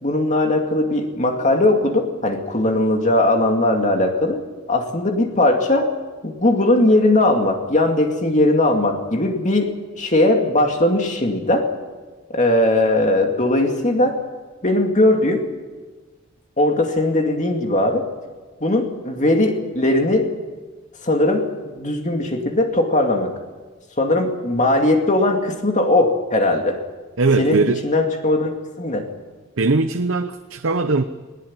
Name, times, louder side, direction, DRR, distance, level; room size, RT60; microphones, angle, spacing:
voice 1, 0.0-4.4 4.7-5.9 6.2-11.7 12.3-14.2 14.6-15.5 16.6-18.1 18.6-20.3 21.0-23.3 24.0-26.8 27.4-29.1, left 1 dB, 35° left, 3 dB, 2.4 m, -19 dB
voice 2, 27.2-27.8 29.6-31.0, right 3 dB, 60° right, 9 dB, 0.8 m, -19 dB
20.0 x 18.5 x 9.0 m, 1.3 s
head